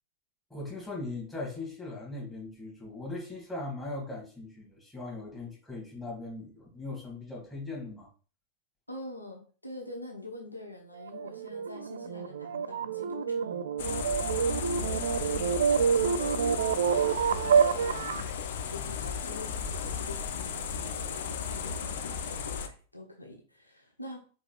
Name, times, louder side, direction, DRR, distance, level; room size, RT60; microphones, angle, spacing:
voice 1, 0.5-8.1 18.8-19.1, left 2 dB, 5° left, -3 dB, 2.2 m, -39 dB
voice 2, 8.9-18.3 18.7-24.3, left 1 dB, 85° left, 0 dB, 0.9 m, -45 dB
sound 1, 11.0-18.3, right 7 dB, 65° right, 0.3 m, -28 dB
sound 2, 13.8-22.7, left 6 dB, 60° left, 0.5 m, -35 dB
4.7 x 4.1 x 2.3 m, 0.39 s
figure-of-eight pair, 90°, 0 cm